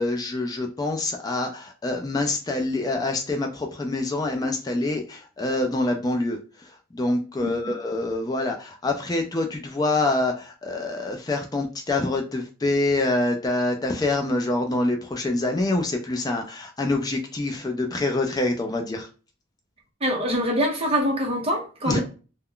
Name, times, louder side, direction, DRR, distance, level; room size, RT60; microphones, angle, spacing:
voice 1, 0.0-19.1 21.9-22.0, left 2 dB, 15° left, 3 dB, 0.3 m, -26 dB
voice 2, 20.0-22.0, equal, 25° right, 1 dB, 0.6 m, -24 dB
2.3 x 2.1 x 3.6 m, 0.35 s
head